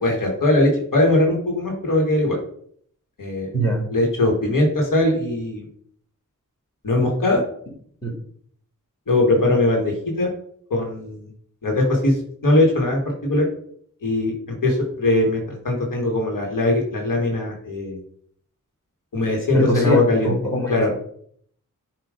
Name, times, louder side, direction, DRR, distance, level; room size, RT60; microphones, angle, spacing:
voice 1, 0.0-2.4 3.2-3.5 3.9-5.7 6.8-7.4 9.1-10.3 10.7-11.3 11.6-12.2 12.4-13.5 14.0-14.3 14.6-18.0 19.1-20.3 20.7-20.9, left 2 dB, 85° left, 0 dB, 1.8 m, -20 dB
voice 2, 19.5-20.9, right 1 dB, 10° left, -2 dB, 2.4 m, -22 dB
7.4 x 3.0 x 5.0 m, 0.62 s
wide cardioid pair, 70°, 32 cm